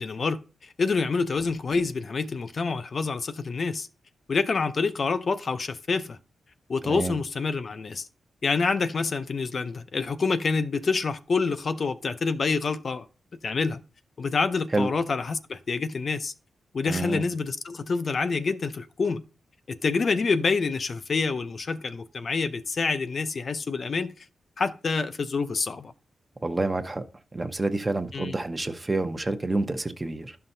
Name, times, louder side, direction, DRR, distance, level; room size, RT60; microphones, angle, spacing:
voice 1, 0.0-3.9 4.3-6.2 6.7-8.1 8.4-13.1 13.4-13.8 14.2-16.3 16.7-19.2 19.7-24.1 24.6-25.9 28.1-28.3, left 4 dB, 50° left, 0.5 m, -27 dB
voice 2, 6.8-7.2 14.7-14.9 16.8-17.2 26.4-27.0 27.3-30.4, right 2 dB, 20° right, 0.8 m, -28 dB
12.0 x 5.7 x 2.7 m
wide cardioid pair, 110°, 0 cm